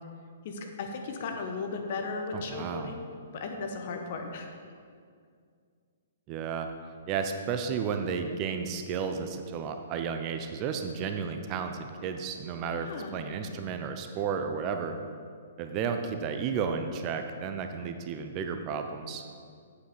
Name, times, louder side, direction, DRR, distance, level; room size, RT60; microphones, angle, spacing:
voice 1, 0.4-3.0 3.3-4.5 12.8-13.1, left 4 dB, 50° left, 3 dB, 1.2 m, -36 dB
voice 2, 2.3-3.0 6.3-6.7 7.1-15.0 15.6-19.2, right 6 dB, 30° right, 6 dB, 0.7 m, -33 dB
8.2 x 7.9 x 5.1 m, 2.2 s
figure-of-eight pair, 120°, 0 cm